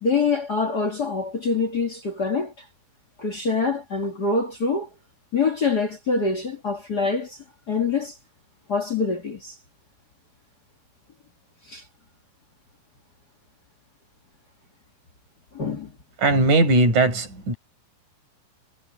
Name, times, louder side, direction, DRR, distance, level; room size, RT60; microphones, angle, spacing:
voice 1, 0.0-2.5 3.2-4.9 5.3-7.4 7.7-8.2 8.7-9.5 11.7-11.8 15.5-15.9, left 4 dB, 35° left, 1.6 m, -25 dB
voice 2, 16.2-17.5, right 2 dB, 50° right, 9.4 m, -19 dB
omnidirectional pair, 4.6 m